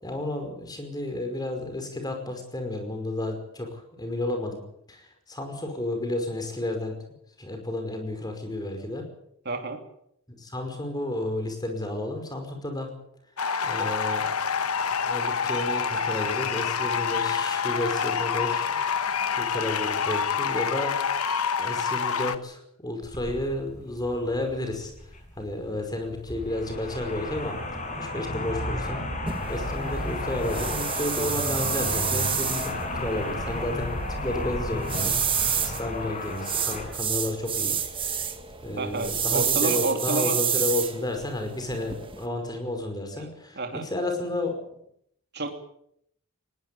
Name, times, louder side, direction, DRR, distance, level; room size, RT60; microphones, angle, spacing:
voice 1, 0.0-4.6 4.9-7.0 7.4-9.1 10.3-12.9 13.6-14.3 15.0-19.1 19.3-21.0 21.6-24.9 25.4-27.6 28.0-29.0 29.5-38.0 38.6-44.6, left 1 dB, 20° left, 5 dB, 5.3 m, -32 dB
voice 2, 9.4-9.8 38.8-40.4 43.5-43.9 45.3-45.5, right 2 dB, 50° right, 4 dB, 3.0 m, -29 dB
sound 1, 13.4-22.4, left 6 dB, 85° left, 1.2 m, -27 dB
sound 2, 23.0-39.6, left 2 dB, 35° left, 5.5 m, -34 dB
sound 3, 29.3-42.3, right 8 dB, 25° right, 1.8 m, -30 dB
20.5 x 18.0 x 8.5 m, 0.73 s
head